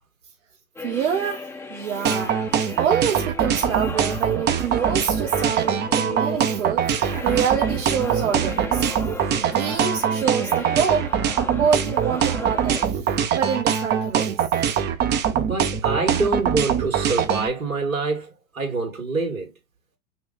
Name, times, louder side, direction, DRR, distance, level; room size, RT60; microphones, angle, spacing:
sound 1, 0.8-12.9, left 3 dB, 5° left, 0.8 m, -36 dB
voice 1, 0.8-2.3 2.8-6.9 7.2-8.8 9.4-11.1 11.6-14.4, right 7 dB, 65° right, 1.2 m, -26 dB
sound 2, 2.0-17.5, right 8 dB, 25° right, 0.7 m, -22 dB
voice 2, 15.3-19.5, right 3 dB, 85° right, 2.1 m, -26 dB
5.6 x 2.4 x 3.9 m
figure-of-eight pair, 100°, 40 cm